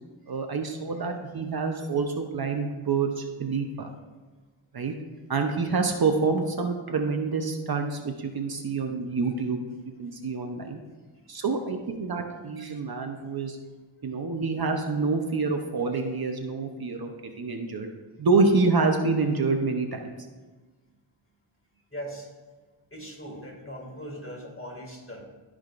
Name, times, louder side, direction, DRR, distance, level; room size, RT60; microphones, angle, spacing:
voice 1, 0.3-3.9 4.7-4.9 5.3-9.7 10.0-10.8 11.3-13.6 14.0-17.9 18.2-20.1, right 4 dB, 50° right, 4 dB, 0.8 m, -27 dB
voice 2, 21.9-22.3 22.9-25.2, equal, 25° left, 0 dB, 2.1 m, -39 dB
14.5 x 5.0 x 2.5 m, 1.3 s
wide cardioid pair, 75°, 49 cm